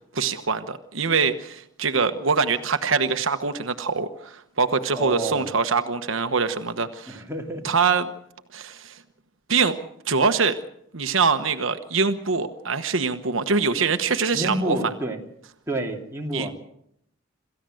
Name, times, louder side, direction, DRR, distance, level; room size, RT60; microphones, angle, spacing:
voice 1, 0.1-7.2 7.6-8.1 8.5-9.0 9.5-9.8 10.1-10.6 10.9-14.8 16.3-16.5, right 5 dB, 70° right, 9 dB, 1.1 m, -24 dB
voice 2, 4.9-5.5 7.1-7.6 14.3-15.2 15.7-16.5, right 1 dB, 15° right, 1 dB, 2.7 m, -29 dB
27.5 x 15.0 x 7.8 m, 0.74 s
head